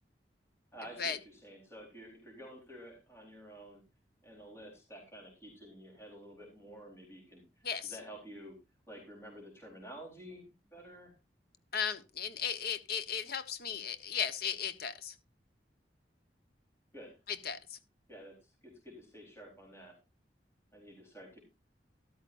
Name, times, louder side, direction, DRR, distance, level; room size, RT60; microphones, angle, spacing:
voice 1, 0.7-3.8 4.2-8.6 8.9-11.1 16.9-17.2 18.1-20.0 20.7-21.4, equal, 15° left, 0 dB, 4.1 m, -51 dB
voice 2, 11.7-15.2 17.3-17.8, left 7 dB, 60° left, 11 dB, 1.2 m, -36 dB
13.5 x 12.0 x 2.6 m, 0.25 s
head